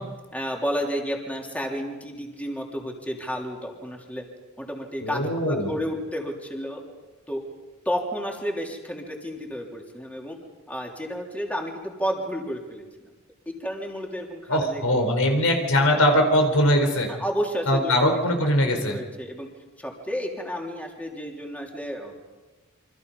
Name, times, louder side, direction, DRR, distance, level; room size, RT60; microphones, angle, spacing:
voice 1, 0.3-4.2 4.6-6.8 7.3-7.4 7.8-10.4 10.7-12.8 13.4-15.1 17.1-18.2 18.8-19.5 19.8-22.1, equal, 5° left, 0 dB, 3.2 m, -31 dB
voice 2, 5.0-5.7 14.5-17.1 17.7-19.0, equal, 80° left, 3 dB, 4.3 m, -21 dB
28.0 x 25.0 x 5.4 m, 1.2 s
head